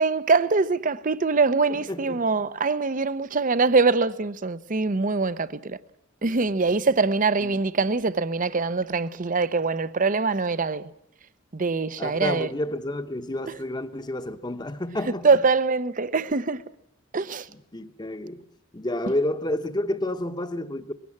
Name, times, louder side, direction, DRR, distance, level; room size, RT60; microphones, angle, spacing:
voice 1, 0.0-5.8 6.2-10.9 11.5-12.5 15.0-16.6 17.1-17.5, right 4 dB, 40° right, 0.7 m, -23 dB
voice 2, 1.9-2.2 7.4-7.6 12.0-15.3 17.7-18.4 18.7-20.9, left 1 dB, 20° left, 1.0 m, -30 dB
20.5 x 17.0 x 8.6 m
head